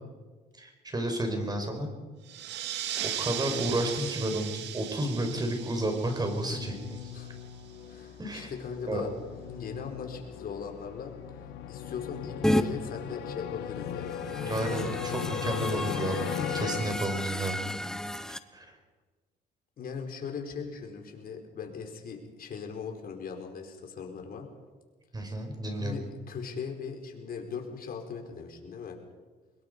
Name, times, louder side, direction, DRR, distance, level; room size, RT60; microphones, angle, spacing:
voice 1, 0.6-1.9 3.2-7.1 8.2-8.5 8.9-9.0 14.4-17.6 18.5-18.7 25.1-26.0, right 1 dB, 25° right, 4 dB, 5.5 m, -31 dB
sound 1, 2.2-7.5, right 10 dB, 80° right, 2.0 m, -37 dB
sound 2, 5.0-17.6, left 9 dB, 80° left, 1.5 m, -38 dB
voice 2, 7.8-9.1 9.5-11.2 11.7-14.2 19.8-24.5 25.8-29.0, left 6 dB, 55° left, 3 dB, 4.6 m, -39 dB
sound 3, 12.4-12.6 14.0-18.4, equal, 5° left, 1.2 m, -32 dB
23.5 x 21.5 x 5.4 m, 1.3 s
cardioid pair, 90°, 18 cm